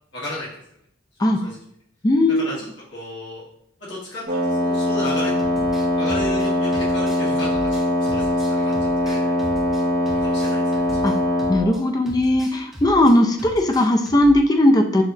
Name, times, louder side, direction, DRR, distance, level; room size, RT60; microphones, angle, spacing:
voice 1, 0.1-0.5 1.2-1.6 2.3-3.4 3.8-5.3 5.9-7.8 8.1-8.7 9.0-9.3 10.2-11.0, left 1 dB, 65° left, -7 dB, 1.4 m, -34 dB
voice 2, 2.0-2.4 11.0-11.1 11.5-15.0, left 1 dB, 20° left, 4 dB, 0.3 m, -17 dB
Wind instrument woodwind instrument, 4.3-11.7, left 1 dB, 50° right, 1.0 m, -21 dB
sound 1, 5.1-11.8 12.1-13.1 13.4-14.4, equal, ahead, 0.7 m, -37 dB
6.2 x 2.9 x 2.7 m, 0.71 s
head